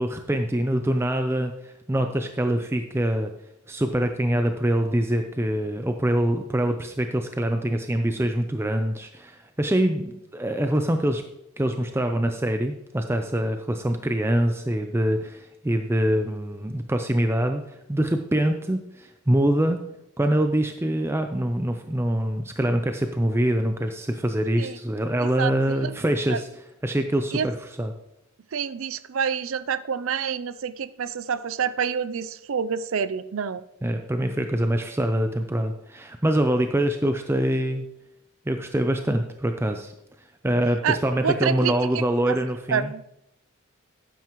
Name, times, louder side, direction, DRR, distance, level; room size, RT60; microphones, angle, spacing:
voice 1, 0.0-3.3 3.7-11.2 11.6-19.8 20.2-26.5 26.8-27.9 33.8-37.8 38.5-39.9 40.4-42.9, right 1 dB, 10° right, 6 dB, 0.4 m, -24 dB
voice 2, 25.4-25.9 26.3-26.4 27.3-27.5 28.5-33.6 40.8-41.0 41.2-42.4 42.7-43.0, right 7 dB, 65° right, 15 dB, 0.5 m, -27 dB
12.0 x 9.2 x 3.1 m, 0.82 s
head